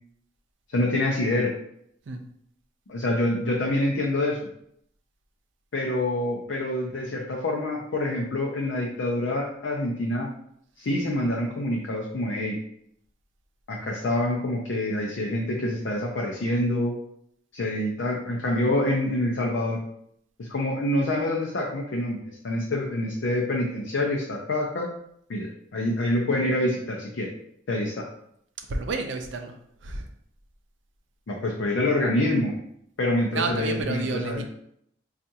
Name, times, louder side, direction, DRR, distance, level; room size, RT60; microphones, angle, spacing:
voice 1, 0.7-1.5 2.9-4.5 5.7-10.3 10.8-12.6 13.7-16.9 17.5-19.8 20.4-24.9 25.3-27.3 27.7-28.0 31.3-32.6 33.0-34.4, left 1 dB, 80° left, -1 dB, 0.5 m, -26 dB
voice 2, 28.7-29.5 29.8-30.1 33.3-34.4, right 3 dB, 75° right, 5 dB, 0.5 m, -30 dB
4.5 x 2.4 x 2.7 m, 0.71 s
head